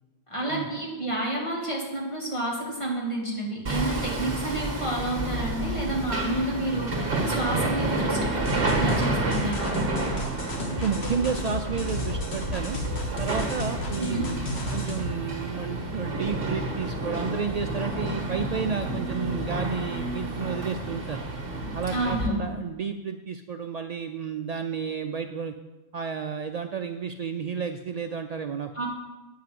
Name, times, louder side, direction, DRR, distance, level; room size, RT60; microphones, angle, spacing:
voice 1, 0.3-9.8 14.0-14.3 21.9-22.5 28.7-28.9, right 1 dB, 25° left, -3 dB, 2.3 m, -30 dB
Hammer, 3.6-22.3, right 2 dB, 50° right, 1.8 m, -30 dB
sound 1, 8.5-15.2, left 3 dB, 60° left, 1.7 m, -34 dB
voice 2, 10.7-12.8 13.2-21.3 21.7-25.5 25.9-28.7, right 6 dB, 80° right, 6 dB, 0.3 m, -31 dB
8.8 x 5.6 x 7.6 m, 1.1 s
omnidirectional pair, 1.3 m